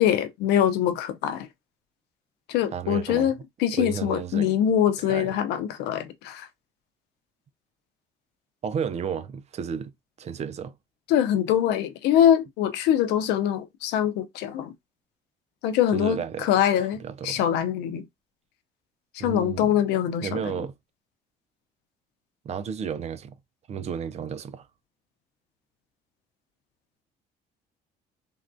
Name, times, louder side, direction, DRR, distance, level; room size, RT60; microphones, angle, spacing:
voice 1, 0.0-1.5 2.5-6.5 11.1-14.7 15.6-18.0 19.1-20.4, left 10 dB, 90° left, 0.6 m, -23 dB
voice 2, 2.7-3.3 3.8-4.6 5.0-5.3 8.6-9.9 10.2-10.7 15.9-16.5 16.8-17.4 19.2-19.8 20.2-20.7 22.4-23.4 23.7-24.7, right 7 dB, 40° right, 0.4 m, -32 dB
3.5 x 2.3 x 2.5 m
cardioid pair, 110°, 17 cm